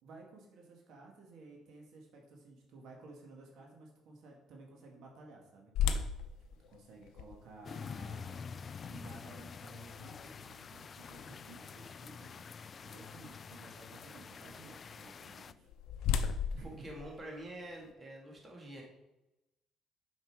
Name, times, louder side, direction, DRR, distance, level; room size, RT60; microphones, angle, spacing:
voice 1, 0.0-5.7 6.7-8.4 8.9-12.5 12.8-15.7 16.5-16.8, right 3 dB, 70° right, 0 dB, 1.9 m, -54 dB
sound 1, 5.7-11.7 12.2-12.3 12.9-13.2 15.2-17.9, left 7 dB, 80° left, 0.6 m, -38 dB
sound 2, 7.6-15.5, left 6 dB, 40° left, 0.3 m, -47 dB
voice 2, 16.6-18.8, right 1 dB, 25° right, -1 dB, 2.0 m, -46 dB
7.6 x 5.6 x 4.8 m, 0.93 s
cardioid pair, 115°, 0 cm